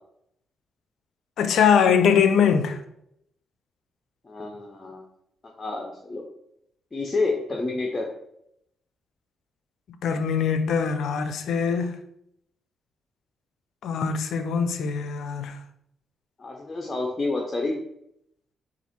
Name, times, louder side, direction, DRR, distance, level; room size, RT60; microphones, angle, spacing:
voice 1, 1.4-2.8 10.0-12.0 13.8-15.6, left 7 dB, 75° left, 0.4 m, -22 dB
voice 2, 4.2-5.0 5.6-6.2 6.9-8.1 16.4-17.8, left 3 dB, 35° left, 0.7 m, -29 dB
4.0 x 2.5 x 4.3 m
supercardioid pair, 55°, 0 cm